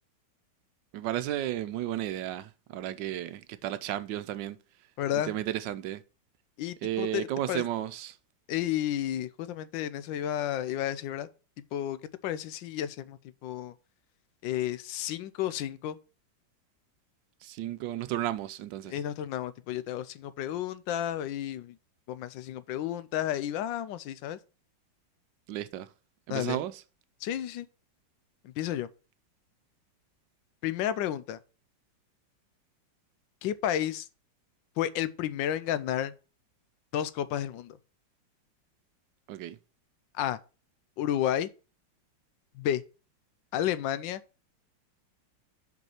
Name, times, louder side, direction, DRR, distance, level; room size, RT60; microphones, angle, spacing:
voice 1, 0.9-4.6 5.2-6.0 6.8-8.1 17.4-18.9 25.5-25.9 26.3-26.7 39.3-39.6, right 12 dB, 80° right, 1.3 m, -33 dB
voice 2, 5.0-5.3 6.6-7.6 8.5-11.3 11.7-12.0 12.2-13.7 14.4-16.0 18.8-21.8 22.1-24.4 26.3-26.6 27.2-27.7 28.6-28.9 30.6-31.4 33.4-34.0 34.8-36.1 36.9-37.8 40.2-40.4 41.0-41.5 42.6-42.8 43.5-44.2, left 11 dB, 80° left, 1.3 m, -31 dB
5.4 x 5.4 x 5.7 m
omnidirectional pair, 2.0 m